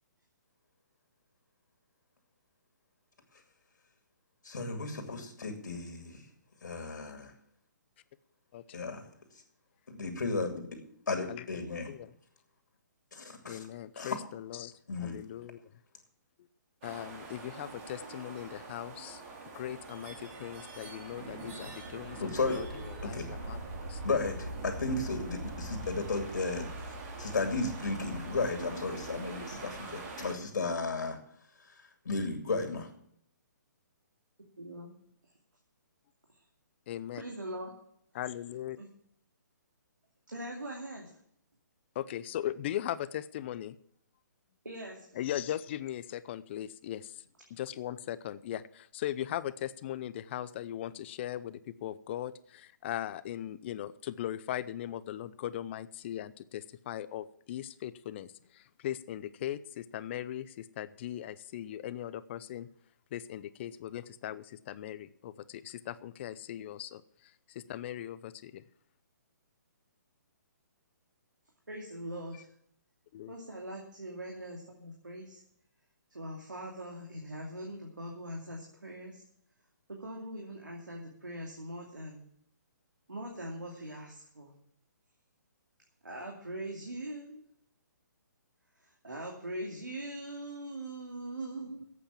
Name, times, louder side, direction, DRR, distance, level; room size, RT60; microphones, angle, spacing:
voice 1, 4.4-6.2 6.6-7.3 8.7-9.0 9.9-10.8 11.1-11.9 13.1-13.6 14.0-14.2 14.9-15.2 22.2-22.6 23.0-23.3 24.0-26.7 27.2-31.2 32.0-32.9, left 3 dB, 70° left, 4 dB, 2.4 m, -34 dB
voice 2, 13.4-15.6 16.4-16.5 16.8-19.2 19.5-23.6 23.9-24.0 36.9-37.2 38.1-38.8 41.9-43.8 45.1-47.2 47.5-62.7 63.1-68.6 73.1-73.3, left 12 dB, 40° left, 16 dB, 0.6 m, -39 dB
sound 1, 16.8-30.3, right 2 dB, 40° right, 3.2 m, -42 dB
voice 3, 34.6-34.9 37.1-37.7 38.8-38.9 40.3-41.2 44.6-45.3 71.7-72.5 73.3-75.4 76.1-79.2 79.9-82.2 83.1-84.5 86.0-87.4 88.8-91.8, right 1 dB, 90° right, -1 dB, 2.5 m, -42 dB
11.5 x 8.4 x 7.5 m, 0.68 s
figure-of-eight pair, 135°, 10 cm